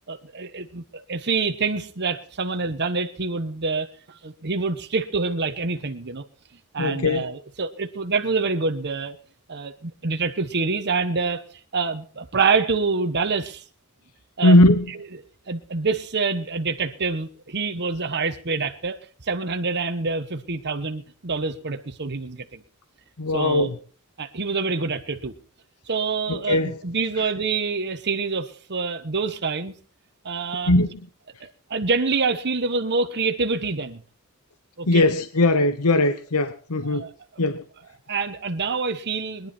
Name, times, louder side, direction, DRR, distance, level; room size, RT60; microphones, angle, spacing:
voice 1, 0.1-6.2 6.7-9.2 9.5-11.5 11.7-13.6 14.4-14.6 14.9-22.6 23.3-23.7 24.2-25.3 25.9-29.7 30.2-30.7 31.4-34.0 34.8-35.1 36.8-37.1 38.1-39.5, right 4 dB, 50° right, 6 dB, 1.1 m, -26 dB
voice 2, 6.8-7.3 14.4-14.9 23.2-23.7 26.3-26.8 30.7-30.9 34.9-37.0 37.4-37.6, left 2 dB, 80° left, 11 dB, 0.9 m, -19 dB
21.5 x 10.5 x 4.4 m, 0.42 s
head